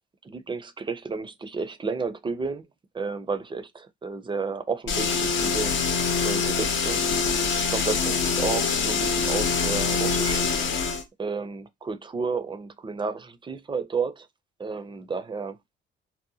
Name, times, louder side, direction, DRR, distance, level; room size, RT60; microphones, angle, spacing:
voice 1, 0.2-2.7 2.9-7.3 7.6-10.9 11.2-14.3 14.6-15.6, right 4 dB, 25° right, 0.4 m, -32 dB
sound 1, 4.9-11.0, left 5 dB, 70° left, 0.7 m, -25 dB
2.7 x 2.1 x 2.7 m
cardioid pair, 90°, 20 cm